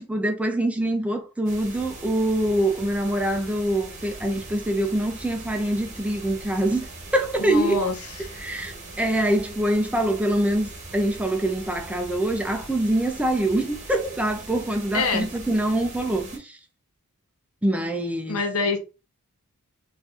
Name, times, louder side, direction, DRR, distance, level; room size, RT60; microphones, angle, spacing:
voice 1, 0.0-6.9 7.1-7.8 8.4-16.6 17.6-18.4, right 1 dB, 5° right, 0.4 m, -24 dB
sound 1, 1.5-16.4, right 2 dB, 35° right, 1.1 m, -41 dB
voice 2, 7.4-8.4 14.9-15.3 18.3-18.8, left 4 dB, 70° left, 0.8 m, -26 dB
4.4 x 2.5 x 2.4 m
head